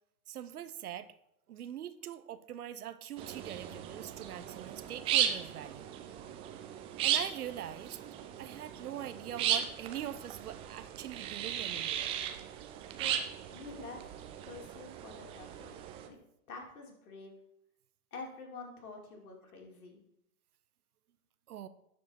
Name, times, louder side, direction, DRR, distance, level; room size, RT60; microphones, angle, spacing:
voice 1, 0.3-1.1 1.5-5.9 7.0-8.0 8.4-12.1 21.5-21.7, right 11 dB, 75° right, 12 dB, 0.8 m, -42 dB
sound 1, 3.2-16.1, right 10 dB, 15° right, 0.3 m, -36 dB
voice 2, 13.5-16.2 16.5-17.3 18.1-20.0, left 4 dB, 70° left, 1 dB, 2.6 m, -47 dB
12.0 x 4.7 x 4.3 m, 0.79 s
figure-of-eight pair, 100°, 45 cm